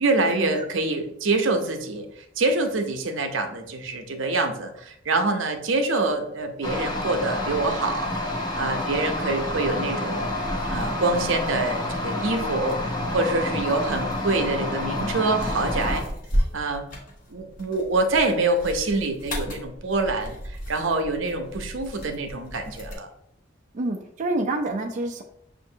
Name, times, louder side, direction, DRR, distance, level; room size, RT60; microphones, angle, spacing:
voice 1, 0.0-2.1 2.4-8.1 8.6-10.3 10.7-12.8 13.1-16.0 16.5-16.8 17.3-23.1, right 3 dB, 80° right, 5 dB, 0.6 m, -25 dB
sound 1, 6.6-16.0, left 1 dB, 20° left, 0.7 m, -29 dB
sound 2, 10.3-23.0, equal, 45° left, 1.0 m, -35 dB
voice 2, 23.7-25.2, right 2 dB, 40° right, 2 dB, 0.4 m, -27 dB
6.3 x 2.5 x 2.7 m, 0.74 s
head